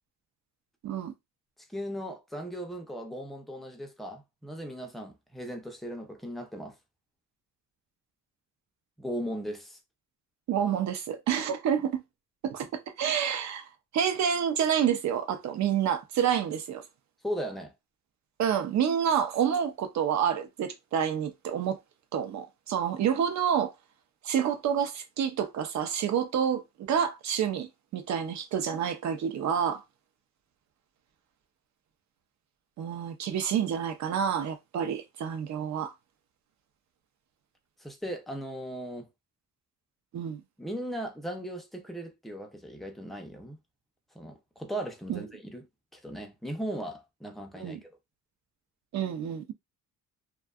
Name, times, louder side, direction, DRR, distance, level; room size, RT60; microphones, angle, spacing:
voice 1, 0.8-1.1 10.5-12.0 12.4-13.7 13.9-16.8 18.4-21.8 22.1-23.7 24.2-29.8 32.8-35.9 40.1-40.4 45.1-45.2 47.6-47.8 48.9-49.5, right 8 dB, 60° right, 0.6 m, -28 dB
voice 2, 1.7-6.8 9.0-9.8 17.2-17.7 37.8-39.1 40.6-43.6 44.1-45.7 45.9-47.9, equal, ahead, 0.4 m, -37 dB
2.6 x 2.3 x 2.3 m
cardioid pair, 145°, 31 cm